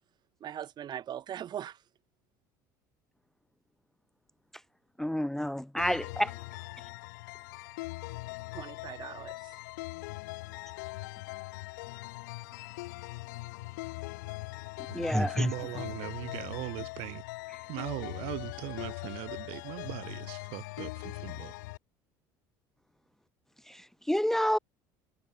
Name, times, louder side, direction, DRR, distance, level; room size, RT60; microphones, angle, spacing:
voice 1, 0.4-1.8 8.5-9.5, right 10 dB, 45° right, 1.2 m, -40 dB
voice 2, 5.0-6.3 14.9-15.5 23.7-24.6, equal, 5° left, 0.6 m, -29 dB
sound 1, 5.8-21.8, left 22 dB, 80° left, 2.6 m, -41 dB
voice 3, 14.9-17.2 17.7-21.5, right 24 dB, 70° right, 1.3 m, -39 dB
hypercardioid pair, 80°, 10 cm